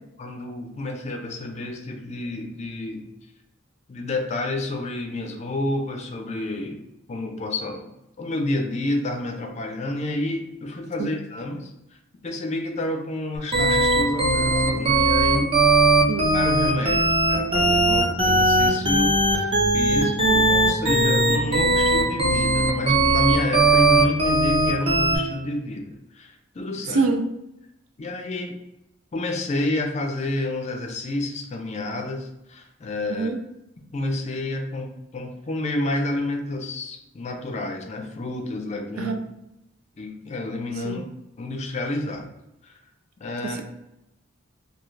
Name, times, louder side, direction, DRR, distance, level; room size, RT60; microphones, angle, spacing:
voice 1, 0.2-3.1 3.9-6.8 7.1-7.9 8.2-11.7 12.2-15.5 16.3-27.1 28.0-28.5 29.1-33.3 33.9-39.2 40.0-41.1 41.4-42.3 43.2-43.6, left 2 dB, 35° left, 0.4 m, -29 dB
sound 1, 13.5-25.2, right 2 dB, 30° right, 0.6 m, -19 dB
voice 2, 26.9-27.3 33.1-33.4 39.0-39.2 40.8-41.0, right 3 dB, 90° right, 0.4 m, -24 dB
2.4 x 2.3 x 3.1 m
head